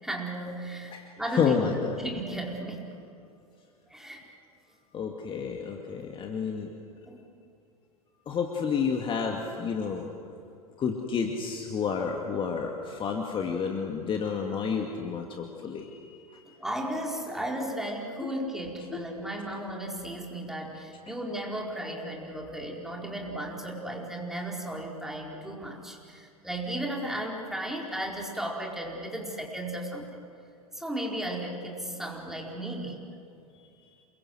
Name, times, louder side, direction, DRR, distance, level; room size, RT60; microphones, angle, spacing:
voice 1, 0.0-1.6 2.0-2.9 3.9-4.2 7.1-7.2 16.6-30.2 30.7-33.0, right 1 dB, ahead, -1 dB, 4.5 m, -35 dB
voice 2, 0.9-2.0 4.9-6.7 8.3-10.1 10.8-16.6 17.3-17.4 18.9-19.2, left 6 dB, 25° left, 2 dB, 2.2 m, -30 dB
28.0 x 23.0 x 7.9 m, 2.5 s
figure-of-eight pair, 90°, 19 cm